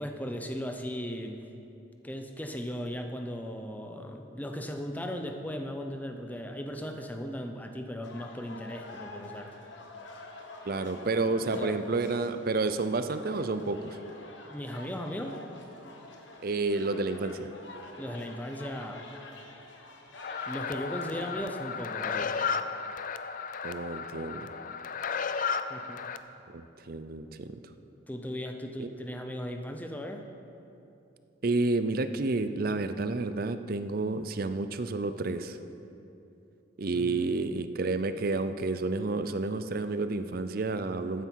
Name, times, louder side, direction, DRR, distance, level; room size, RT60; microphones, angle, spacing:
voice 1, 0.0-1.4 2.0-9.5 11.4-11.8 14.5-15.4 18.0-19.1 20.5-22.4 25.7-26.0 28.1-30.2 36.9-37.3, equal, 10° left, 4 dB, 0.7 m, -37 dB
sound 1, 8.0-21.3, left 2 dB, 65° left, 1.2 m, -47 dB
voice 2, 10.7-14.0 16.4-17.5 23.6-24.5 26.5-27.5 28.8-28.9 31.4-35.6 36.8-41.2, right 3 dB, 45° right, 10 dB, 0.5 m, -30 dB
sound 2, 20.2-26.2, left 6 dB, 40° left, 0.4 m, -34 dB
14.0 x 9.3 x 4.6 m, 2.9 s
head